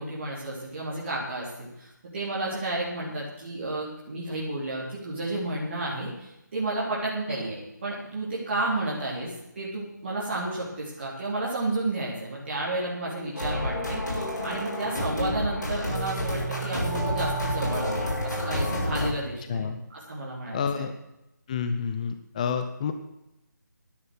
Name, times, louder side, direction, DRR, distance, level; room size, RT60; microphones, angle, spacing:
voice 1, 0.0-20.9, right 2 dB, 35° right, -6 dB, 3.6 m, -32 dB
sound 1, 13.3-19.1, equal, 65° left, 7.2 m, -29 dB
voice 2, 19.5-19.8 20.5-20.9 21.5-22.9, left 6 dB, 20° left, 8 dB, 0.7 m, -29 dB
12.0 x 12.0 x 6.4 m, 0.87 s
figure-of-eight pair, 155°, 10 cm